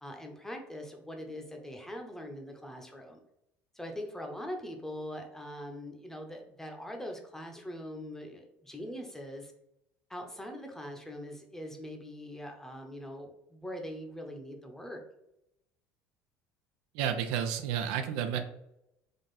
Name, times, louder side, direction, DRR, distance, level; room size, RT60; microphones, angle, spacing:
voice 1, 0.0-3.2 3.7-9.5 10.1-15.0, equal, 5° left, 3 dB, 0.8 m, -42 dB
voice 2, 16.9-18.4, right 8 dB, 80° right, 7 dB, 0.5 m, -31 dB
3.8 x 2.4 x 4.0 m, 0.83 s
supercardioid pair, 100°, 7 cm